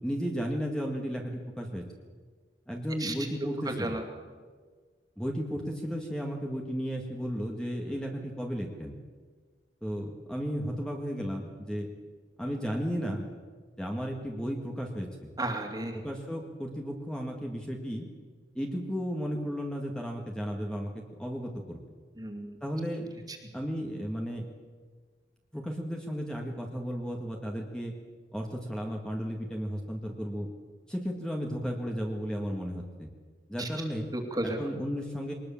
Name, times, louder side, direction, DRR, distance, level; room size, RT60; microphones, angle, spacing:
voice 1, 0.0-1.8 2.7-4.0 5.2-8.9 9.8-11.9 12.4-13.3 13.8-15.3 15.9-18.1 18.6-21.8 22.6-23.1 23.5-24.5 25.5-27.9 28.3-30.5 30.9-33.1 33.5-34.1 34.6-35.3, equal, 5° left, 0 dB, 1.9 m, -34 dB
voice 2, 3.6-4.0 15.4-15.9 22.2-22.6 23.3-23.4 33.6-33.7 34.1-34.6, right 2 dB, 20° right, 4 dB, 2.8 m, -33 dB
22.5 x 19.5 x 7.2 m, 1.5 s
head